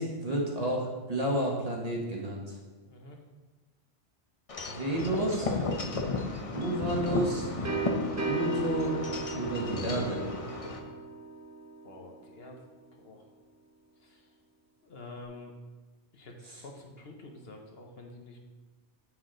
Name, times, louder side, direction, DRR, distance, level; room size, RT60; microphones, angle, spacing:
voice 1, 0.0-2.5 4.7-5.5 6.5-7.5 8.3-8.9 9.3-10.3 16.5-16.6, right 1 dB, 35° right, -2 dB, 1.1 m, -31 dB
voice 2, 2.9-3.2 11.8-12.6 13.0-13.3 14.0-14.3 14.8-15.5 16.1-18.4, left 2 dB, 60° left, 2 dB, 1.0 m, -48 dB
Wind chime / Wind, 4.5-10.8, left 3 dB, 40° left, 0.6 m, -34 dB
sound 1, 6.6-12.3, right 3 dB, 20° right, 0.6 m, -36 dB
7.7 x 4.6 x 3.7 m, 1.3 s
omnidirectional pair, 1.2 m